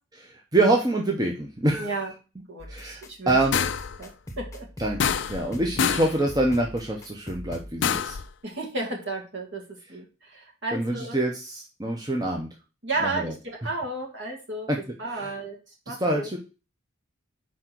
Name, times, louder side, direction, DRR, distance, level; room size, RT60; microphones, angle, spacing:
voice 1, 0.2-1.9 2.7-3.0 3.3-3.6 4.8-8.2 10.7-12.5 13.0-13.3 14.7-14.8 15.1-15.3 15.9-16.4, right 2 dB, 20° right, 1 dB, 0.8 m, -25 dB
voice 2, 1.8-2.1 2.5-3.6 4.0-4.7 8.4-9.6 9.9-11.2 12.8-14.7 15.0-15.6 15.9-16.3, right 2 dB, 55° right, 0 dB, 2.2 m, -33 dB
sound 1, 2.6-7.7, equal, 15° left, 1.0 m, -40 dB
sound 2, 3.5-4.0 5.0-5.5 5.8-6.2 7.8-8.3, left 7 dB, 60° left, 0.4 m, -25 dB
5.0 x 4.2 x 5.9 m, 0.32 s
head